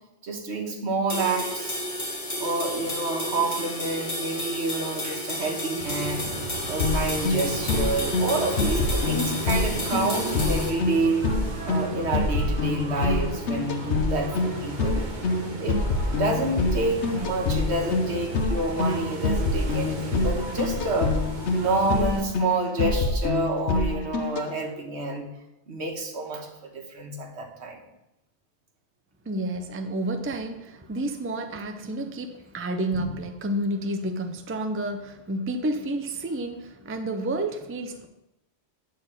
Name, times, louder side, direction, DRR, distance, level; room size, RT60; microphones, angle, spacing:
voice 1, 0.2-1.8 2.4-6.3 6.7-11.2 11.6-15.1 15.6-15.8 16.1-21.2 21.5-25.3 25.7-27.8, right 2 dB, 75° right, 2 dB, 1.5 m, -28 dB
sound 1, 1.1-10.7, left 1 dB, 45° left, 1.9 m, -32 dB
sound 2, 5.8-22.2, right 4 dB, 45° right, 1.0 m, -36 dB
sound 3, 6.8-24.5, left 3 dB, 80° left, 1.1 m, -26 dB
voice 2, 29.2-38.1, right 1 dB, 15° right, 7 dB, 0.4 m, -30 dB
9.2 x 4.2 x 6.5 m, 0.90 s
omnidirectional pair, 1.1 m